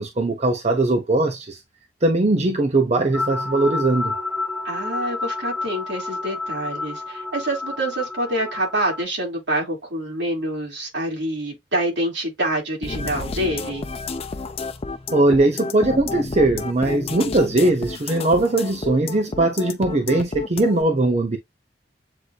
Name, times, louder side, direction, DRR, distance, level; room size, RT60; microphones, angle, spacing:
voice 1, 0.0-1.6 2.0-4.1 15.1-21.4, right 2 dB, 40° right, 0.8 m, -20 dB
sound 1, 3.1-9.0, left 3 dB, ahead, 0.9 m, -30 dB
voice 2, 4.6-13.8, right 1 dB, 80° right, 3.0 m, -26 dB
sound 2, 12.8-20.8, left 3 dB, 35° left, 0.6 m, -31 dB
7.8 x 2.6 x 2.4 m
head